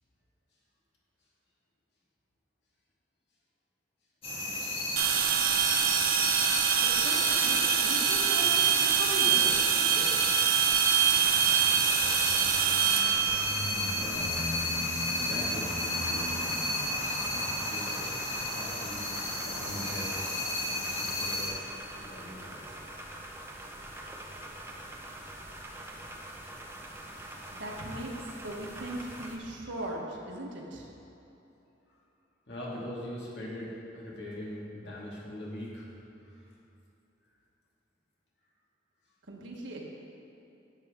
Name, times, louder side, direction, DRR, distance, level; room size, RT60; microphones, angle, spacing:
sound 1, 4.2-21.5, left 1 dB, 30° left, 1.8 m, -32 dB
sound 2, 5.0-14.2, right 9 dB, 50° right, 0.5 m, -25 dB
voice 1, 6.8-10.3 27.5-28.1 28.4-30.9 39.3-39.9, right 1 dB, 85° right, -1 dB, 1.3 m, -39 dB
sound 3, 11.0-29.4, right 1 dB, 15° right, 0.7 m, -44 dB
voice 2, 13.9-14.3 14.8-14.9 15.3-16.6 17.2-18.1 18.5-19.2 19.4-20.2 20.9-21.5 21.9-22.7 32.5-35.9 36.3-36.4, left 1 dB, 65° left, -5 dB, 2.0 m, -41 dB
10.5 x 7.2 x 3.6 m, 2.9 s
head